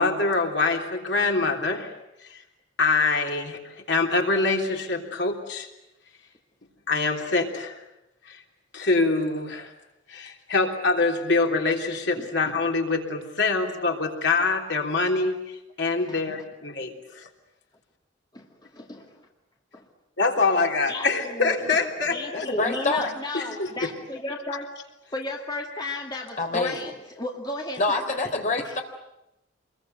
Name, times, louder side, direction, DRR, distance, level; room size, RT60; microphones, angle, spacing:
voice 1, 0.0-1.9 2.3-2.4 2.8-5.7 6.9-7.8 8.2-8.4 8.7-9.7 10.1-17.3 20.2-22.5 23.3-23.4 23.8-23.9, left 3 dB, 65° left, 2 dB, 3.4 m, -25 dB
voice 2, 18.3-19.2 19.7-19.9 20.9-21.7 22.1-24.7 25.1-28.2 28.6-28.8, left 2 dB, 20° left, 0 dB, 2.2 m, -34 dB
voice 3, 22.3-23.1 26.4-26.9 27.8-28.8, left 2 dB, 40° left, 4 dB, 3.5 m, -26 dB
27.0 x 22.0 x 9.4 m, 0.91 s
head